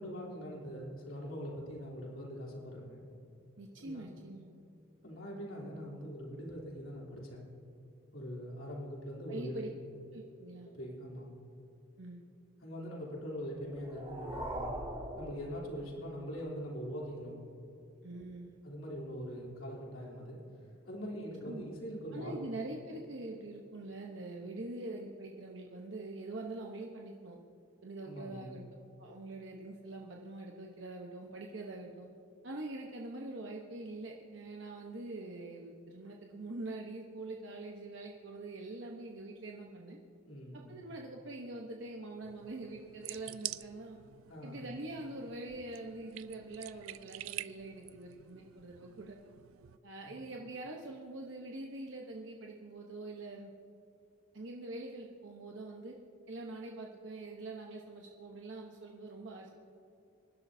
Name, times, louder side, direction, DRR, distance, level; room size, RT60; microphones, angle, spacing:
voice 1, 0.0-3.0 3.8-4.1 5.0-7.4 8.1-9.6 10.6-11.3 12.6-14.7 15.2-17.4 18.6-20.4 20.9-22.5 28.0-28.6 40.3-40.7 44.3-44.7 50.1-50.2, equal, 80° left, -3 dB, 3.3 m, -42 dB
voice 2, 3.6-4.5 9.3-9.7 10.1-10.7 12.0-12.2 18.0-18.6 21.5-21.7 22.1-27.4 27.8-28.6 29.0-32.1 32.4-40.0 40.7-44.0 44.4-49.2 49.8-53.5 54.3-55.9 56.3-59.5, right 2 dB, 60° right, 0 dB, 1.0 m, -44 dB
sound 1, 13.6-16.2, right 1 dB, 25° right, 2.2 m, -42 dB
sound 2, 42.2-49.8, right 14 dB, 90° right, 0.4 m, -47 dB
26.0 x 12.0 x 2.7 m, 2.7 s
head